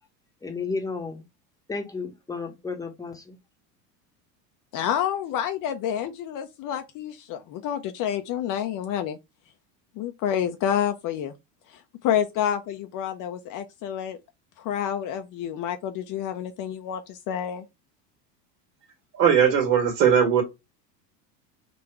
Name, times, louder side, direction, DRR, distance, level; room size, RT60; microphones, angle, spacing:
voice 1, 0.4-1.2 1.7-3.4, left 4 dB, 5° left, 1.0 m, -32 dB
voice 2, 4.7-9.2 10.0-11.3 11.7-14.2 14.6-17.6, left 9 dB, 40° left, 0.6 m, -29 dB
voice 3, 19.1-20.4, right 8 dB, 70° right, 1.7 m, -19 dB
3.8 x 2.5 x 4.4 m
hypercardioid pair, 95°, 49 cm